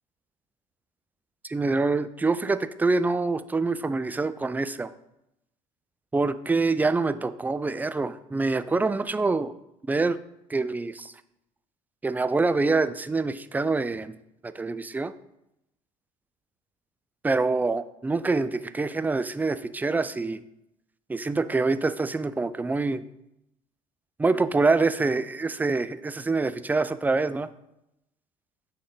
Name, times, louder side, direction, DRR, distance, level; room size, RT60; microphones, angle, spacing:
voice 1, 1.4-4.9 6.1-9.5 9.9-10.2 10.5-11.1 12.0-14.1 14.4-15.1 17.2-20.4 21.1-23.0 24.2-27.5, right 3 dB, 10° right, 13 dB, 0.3 m, -25 dB
6.5 x 3.7 x 3.9 m, 0.85 s
hypercardioid pair, 65°, 17 cm